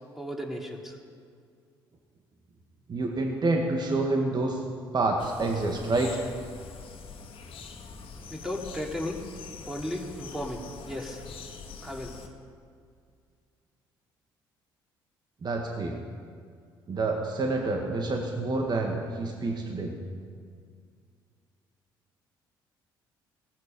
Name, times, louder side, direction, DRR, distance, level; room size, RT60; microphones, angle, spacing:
voice 1, 0.1-1.0 8.3-9.2 9.7-11.2 11.8-12.1, left 1 dB, 5° right, 0 dB, 3.3 m, -35 dB
voice 2, 2.9-4.6 4.9-6.2 15.4-16.0 16.9-20.0, right 2 dB, 40° right, 2 dB, 1.8 m, -28 dB
sound 1, 5.2-12.3, left 5 dB, 50° left, 1.9 m, -44 dB
17.5 x 15.0 x 5.4 m, 2.2 s
hypercardioid pair, 50°, 11 cm